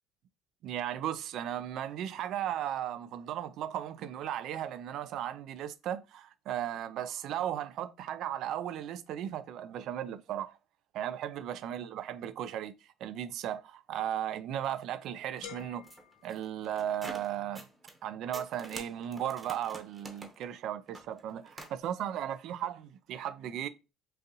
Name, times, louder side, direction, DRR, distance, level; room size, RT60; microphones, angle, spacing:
voice 1, 0.6-10.6 10.9-12.7 13.0-15.9 16.2-17.7 18.0-23.7, right 10 dB, 65° right, 0.3 m, -36 dB
sound 1, 15.2-18.0 18.3-21.8, right 1 dB, 20° right, 0.8 m, -48 dB
sound 2, 15.4-17.3, left 12 dB, 80° left, 0.4 m, -51 dB
3.9 x 2.5 x 2.7 m
supercardioid pair, 80°, 0 cm